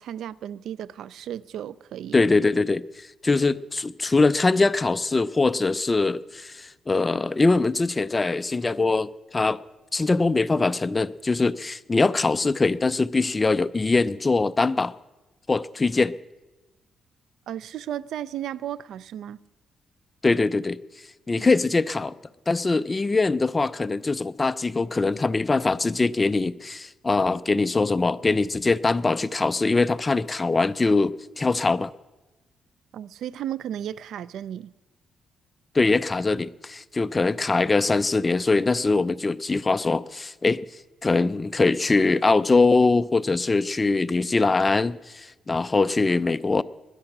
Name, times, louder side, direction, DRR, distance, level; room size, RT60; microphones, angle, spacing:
voice 1, 0.0-2.2 17.5-19.4 21.4-21.5 32.9-34.7, right 10 dB, 75° right, 0.4 m, -34 dB
voice 2, 2.1-9.6 9.9-14.9 15.5-16.1 20.2-20.8 21.3-22.2 22.5-31.9 35.7-40.6 41.0-46.6, left 3 dB, 20° left, 0.4 m, -22 dB
20.5 x 9.8 x 6.0 m
cardioid pair, 115°, 0 cm